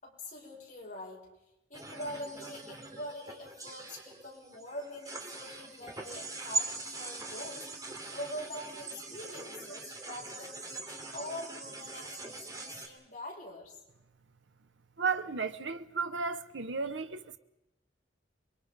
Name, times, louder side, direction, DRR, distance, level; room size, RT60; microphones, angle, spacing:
voice 1, 0.0-1.2 1.7-13.8, left 1 dB, 45° left, 6.1 m, -44 dB
sound 1, 1.7-12.9, right 3 dB, 20° right, 2.7 m, -41 dB
voice 2, 15.0-17.4, right 5 dB, 85° right, 1.0 m, -34 dB
28.5 x 22.0 x 5.3 m
head